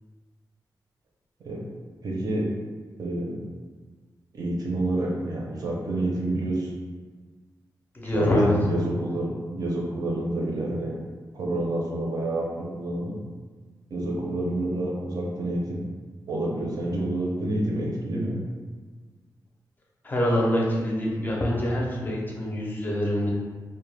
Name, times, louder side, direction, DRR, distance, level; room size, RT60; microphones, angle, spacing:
voice 1, 2.0-2.5 3.0-3.4 4.3-6.7 8.1-10.9 11.3-13.2 13.9-15.8 16.3-18.4, right 1 dB, 55° right, -2 dB, 0.5 m, -28 dB
voice 2, 7.9-8.5 20.0-23.3, left 1 dB, 25° left, -3 dB, 0.4 m, -25 dB
2.2 x 2.1 x 3.1 m, 1.4 s
wide cardioid pair, 165°, 7 cm